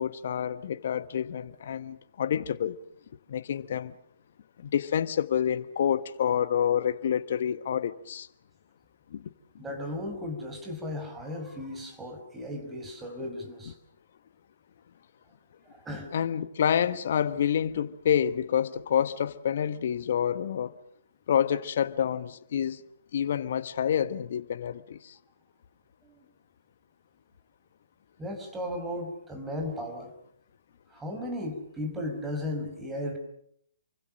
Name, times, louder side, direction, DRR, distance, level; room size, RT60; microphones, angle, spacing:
voice 1, 0.0-2.8 3.3-3.9 4.6-8.3 9.1-9.2 16.1-20.8 21.3-22.8 23.1-25.1, left 9 dB, 55° left, 1.3 m, -28 dB
voice 2, 9.6-13.7 15.8-16.1 26.0-26.2 28.2-30.1 30.9-33.2, left 1 dB, 10° right, 5.5 m, -35 dB
28.5 x 24.5 x 6.4 m
figure-of-eight pair, 130°, 0 cm